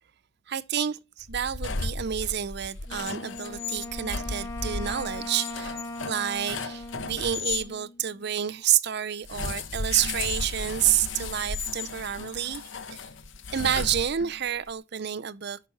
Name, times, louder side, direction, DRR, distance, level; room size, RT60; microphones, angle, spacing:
voice 1, 0.5-5.8 6.0-13.1 13.5-15.6, right 10 dB, 50° right, 0.5 m, -29 dB
sound 1, 1.2-7.7 9.2-14.5, left 4 dB, 60° left, 0.9 m, -35 dB
Wind instrument woodwind instrument, 2.9-8.3, left 2 dB, 15° left, 0.8 m, -40 dB
10.5 x 6.0 x 4.0 m
head